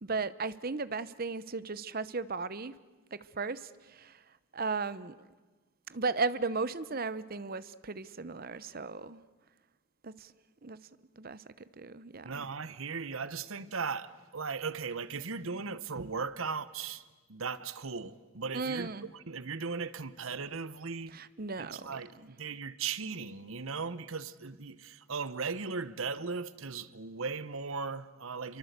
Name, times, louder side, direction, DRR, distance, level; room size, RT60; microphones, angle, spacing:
voice 1, 0.0-2.8 3.1-4.2 4.5-5.1 5.9-9.2 10.0-10.3 10.6-10.8 11.2-11.4 11.8-12.5 18.5-19.1 21.1-22.3, right 4 dB, 40° right, 0.8 m, -36 dB
voice 2, 12.2-21.2 21.6-28.6, right 5 dB, 70° right, 1.0 m, -37 dB
28.5 x 23.5 x 8.2 m
head